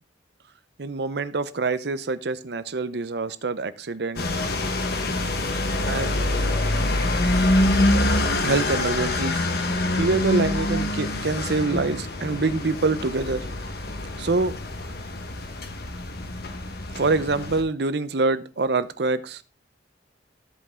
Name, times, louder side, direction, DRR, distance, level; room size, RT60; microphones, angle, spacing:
voice 1, 0.8-4.3 5.9-6.6 8.4-9.5 9.9-13.5 14.2-14.6 16.9-19.4, right 3 dB, 60° right, 0.7 m, -25 dB
sound 1, 4.2-17.6, left 1 dB, 55° left, 1.1 m, -25 dB
13.5 x 5.3 x 3.7 m
head